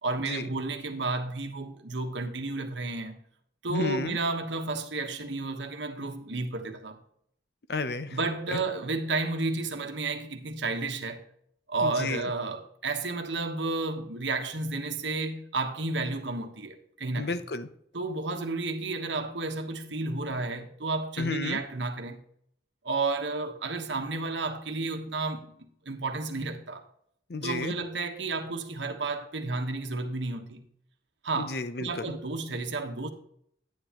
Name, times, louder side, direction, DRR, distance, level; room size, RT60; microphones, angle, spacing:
voice 1, 0.0-3.2 3.6-7.0 8.1-11.2 11.7-17.4 17.9-22.2 22.8-26.8 27.4-30.6 31.2-31.5 31.8-33.1, right 3 dB, 80° right, 1.2 m, -32 dB
voice 2, 3.7-4.2 7.7-8.2 8.5-8.6 11.8-12.3 17.2-17.7 21.2-21.6 27.3-27.7 31.4-32.1, left 3 dB, 60° left, 0.6 m, -32 dB
9.4 x 9.4 x 2.9 m
head